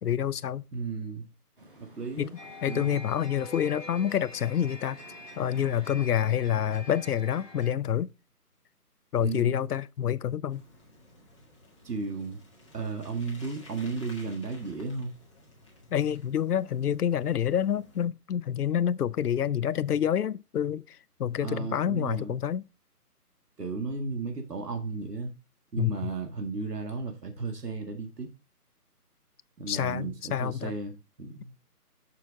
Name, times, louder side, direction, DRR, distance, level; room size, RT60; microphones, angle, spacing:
voice 1, 0.0-0.6 2.2-2.3 2.6-5.0 5.4-8.1 9.1-10.6 15.9-22.7 25.8-26.1 29.7-30.8, left 9 dB, 75° left, 0.6 m, -28 dB
voice 2, 0.7-1.3 1.8-2.3 2.7-3.0 9.2-9.6 11.8-12.4 12.7-15.1 21.4-22.4 23.6-25.3 25.7-28.3 29.6-31.5, right 4 dB, 85° right, 1.9 m, -34 dB
sound 1, 1.6-7.5, right 1 dB, 35° right, 1.7 m, -54 dB
sound 2, 2.3-7.7, left 2 dB, 5° right, 3.4 m, -45 dB
Bicycle, 10.5-18.0, left 1 dB, 20° left, 1.6 m, -54 dB
7.0 x 6.7 x 3.7 m
hypercardioid pair, 180°, 47 cm